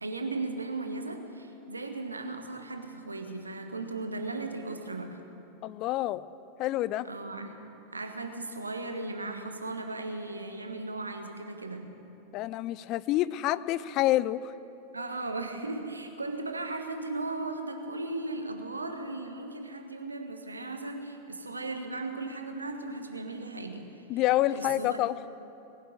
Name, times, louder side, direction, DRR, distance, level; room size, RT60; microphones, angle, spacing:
voice 1, 0.0-5.2 7.1-7.6 7.9-11.8 14.9-24.1 24.5-25.0, right 2 dB, 80° right, 5 dB, 1.3 m, -36 dB
voice 2, 5.6-6.2 6.6-7.1 12.3-14.4 24.1-25.2, left 15 dB, 40° left, 17 dB, 0.4 m, -27 dB
20.0 x 7.3 x 9.0 m, 2.9 s
figure-of-eight pair, 90°, 0 cm